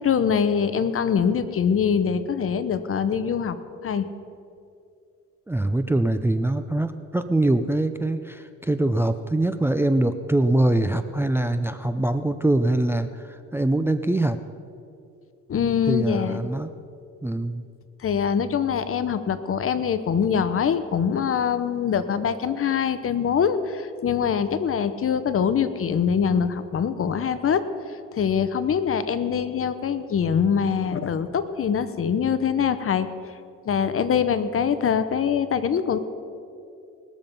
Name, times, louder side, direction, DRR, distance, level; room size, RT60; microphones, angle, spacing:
voice 1, 0.0-3.6 3.8-4.1 15.5-16.4 18.0-27.6 28.1-33.1 33.6-36.0, left 7 dB, 45° left, 12 dB, 0.8 m, -23 dB
voice 2, 5.5-14.4 15.9-16.7 17.2-17.6, right 1 dB, 10° right, 10 dB, 0.5 m, -23 dB
20.0 x 7.2 x 5.3 m, 2.5 s
cardioid pair, 90°, 30 cm